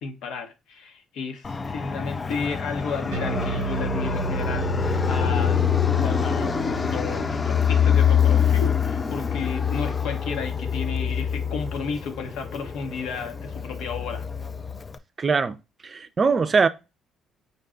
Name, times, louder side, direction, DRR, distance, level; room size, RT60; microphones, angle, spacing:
voice 1, 0.0-5.6 5.9-14.3, left 5 dB, 70° left, 0.8 m, -33 dB
Fixed-wing aircraft airplane, 1.4-15.0, left 7 dB, 35° left, 0.4 m, -25 dB
Bass guitar, 3.1-9.6, right 5 dB, 90° right, 0.5 m, -33 dB
voice 2, 15.2-15.6 15.8-16.7, right 5 dB, 40° right, 0.5 m, -21 dB
5.3 x 2.3 x 3.7 m
hypercardioid pair, 55°, 0 cm